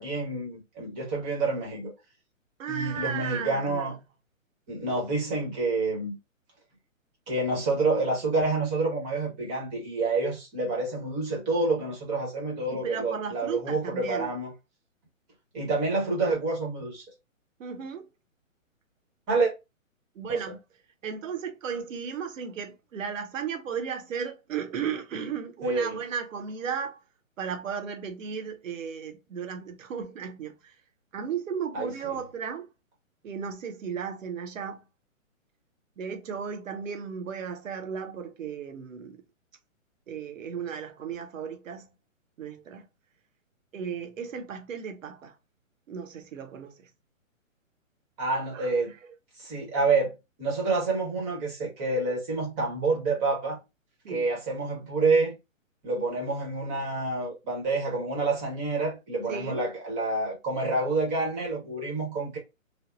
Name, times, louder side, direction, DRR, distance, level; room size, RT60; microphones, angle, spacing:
voice 1, 0.0-1.9 2.7-3.9 4.7-6.2 7.3-14.5 15.5-17.0 19.3-19.5 20.3-20.6 25.6-26.0 31.7-31.9 48.2-48.9 49.4-50.1 50.4-53.6 54.1-55.3 55.8-62.4, right 3 dB, 15° right, 0.9 m, -28 dB
voice 2, 2.6-3.9 12.6-14.3 17.6-18.1 20.1-20.6 21.0-27.0 27.4-30.7 31.1-32.7 33.2-34.8 36.0-39.2 40.1-41.9 42.4-42.9 43.7-45.3 45.9-46.9 48.5-48.7 54.0-54.3 59.3-59.6, right 7 dB, 70° right, 0.9 m, -35 dB
3.4 x 2.0 x 2.4 m
hypercardioid pair, 150°, 41 cm